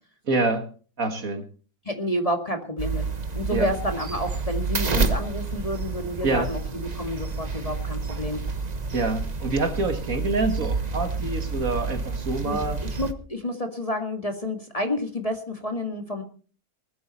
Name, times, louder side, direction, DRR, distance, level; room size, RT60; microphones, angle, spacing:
voice 1, 0.3-0.7 1.0-1.5 3.5-3.7 6.2-6.5 8.9-12.8, right 3 dB, 55° right, 7 dB, 2.0 m, -26 dB
voice 2, 1.8-3.0 3.3-8.4 12.4-16.2, left 1 dB, 20° left, 4 dB, 2.1 m, -29 dB
sound 1, 2.8-13.1, right 4 dB, 25° right, 1.2 m, -29 dB
20.0 x 13.0 x 4.3 m, 0.40 s
omnidirectional pair, 1.8 m